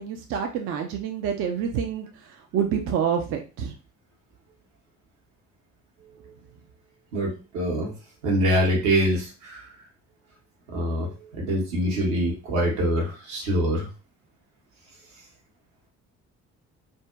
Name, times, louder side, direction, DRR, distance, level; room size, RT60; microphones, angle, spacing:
voice 1, 0.0-2.1 2.5-3.7, right 7 dB, 35° right, 4 dB, 0.4 m, -27 dB
voice 2, 7.1-7.9 8.2-9.7 10.7-13.9, equal, 65° right, -1 dB, 1.1 m, -24 dB
2.6 x 2.1 x 2.3 m, 0.33 s
figure-of-eight pair, 50°, 44 cm